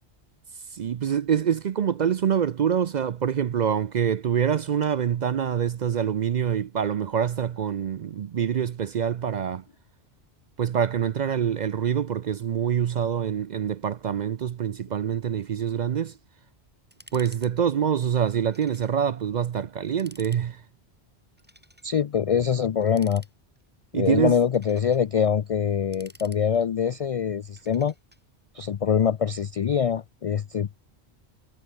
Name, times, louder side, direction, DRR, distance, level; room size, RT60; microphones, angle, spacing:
voice 1, 0.7-9.6 10.6-16.1 17.1-20.6 23.9-24.4, right 8 dB, 55° right, 0.5 m, -25 dB
sound 1, 16.9-17.5 17.8-17.9 18.5-19.0 19.3-19.4 19.8-20.4 21.4-21.9 22.8-23.7 24.3-25.0 25.7-26.8 27.6-28.2, equal, 10° right, 6.9 m, -52 dB
voice 2, 21.8-23.2 23.9-27.9 28.5-30.7, left 7 dB, 65° left, 0.3 m, -24 dB
omnidirectional pair, 1.1 m